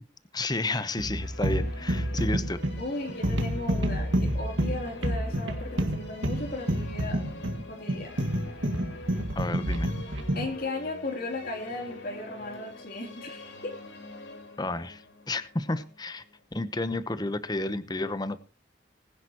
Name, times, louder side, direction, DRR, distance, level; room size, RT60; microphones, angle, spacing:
voice 1, 0.3-2.6 9.3-9.9 14.6-16.2 16.5-18.4, left 2 dB, 20° left, 13 dB, 0.9 m, -31 dB
sound 1, 0.9-16.9, left 2 dB, 75° left, 3.6 m, -45 dB
sound 2, 1.0-10.6, right 1 dB, 80° right, 1.9 m, -29 dB
voice 2, 2.8-7.2 7.7-8.2 10.3-13.7, left 2 dB, 50° left, 2 dB, 3.3 m, -36 dB
20.0 x 10.5 x 3.0 m, 0.29 s
head